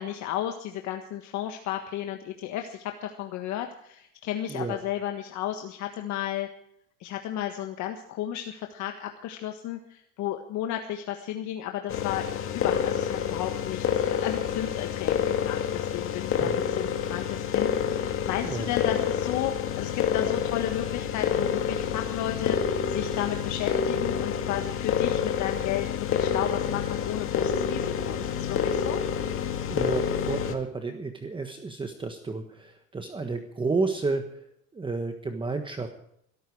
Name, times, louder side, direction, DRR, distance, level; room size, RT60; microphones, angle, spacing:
voice 1, 0.0-6.5 7.0-12.3 12.5-22.6 22.9-29.0, left 11 dB, 60° left, 4 dB, 1.6 m, -33 dB
sound 1, 11.9-30.6, left 8 dB, 40° left, 2.0 m, -28 dB
voice 2, 29.7-34.5 34.7-35.9, right 3 dB, 15° right, 6 dB, 1.3 m, -31 dB
22.0 x 12.5 x 4.8 m, 0.74 s
cardioid pair, 135°, 32 cm